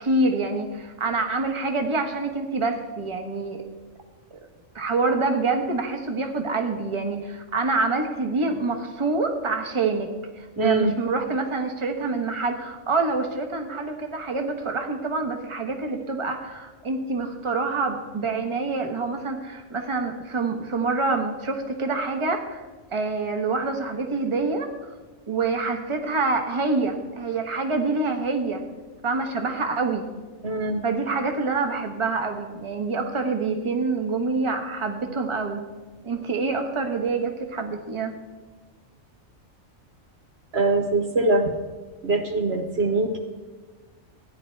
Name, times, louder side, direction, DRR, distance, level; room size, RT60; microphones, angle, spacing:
voice 1, 0.0-3.6 4.7-10.1 10.4-22.6 22.9-24.7 25.3-28.6 29.0-30.1 30.8-35.7 36.0-38.1, right 3 dB, 25° right, 4 dB, 1.2 m, -26 dB
voice 2, 10.6-10.9 30.4-30.8 40.5-41.5 42.0-43.2, right 2 dB, 55° right, 5 dB, 1.1 m, -23 dB
14.5 x 10.0 x 4.5 m, 1.3 s
omnidirectional pair, 1.4 m